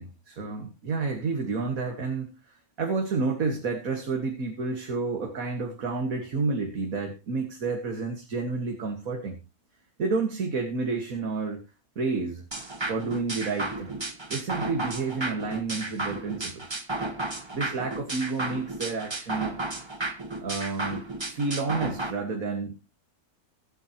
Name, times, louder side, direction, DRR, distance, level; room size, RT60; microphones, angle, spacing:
voice 1, 0.0-9.4 10.0-11.6 12.0-12.4 12.9-14.0 14.3-16.8 17.5-19.6 20.4-21.0 21.3-22.8, right 4 dB, 65° right, 3 dB, 2.1 m, -30 dB
sound 1, 12.5-22.1, right 2 dB, 20° right, 1.2 m, -33 dB
23.5 x 8.0 x 2.9 m, 0.27 s
omnidirectional pair, 1.6 m